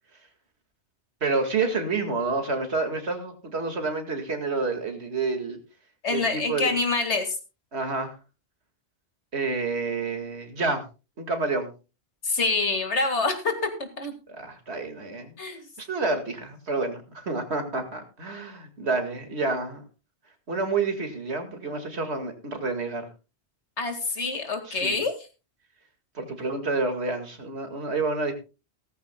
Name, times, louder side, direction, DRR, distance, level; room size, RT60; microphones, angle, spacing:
voice 1, 1.2-5.6 6.1-6.7 7.7-8.1 9.3-10.8 11.2-11.7 14.3-15.3 15.8-19.8 20.5-23.1 24.7-25.0 26.1-28.3, right 3 dB, 75° right, 6 dB, 2.3 m, -29 dB
voice 2, 6.0-7.4 12.2-13.5 14.0-14.1 15.4-15.7 23.8-25.1, left 3 dB, 85° left, 6 dB, 2.3 m, -26 dB
17.0 x 14.0 x 2.2 m, 0.31 s
omnidirectional pair, 1.1 m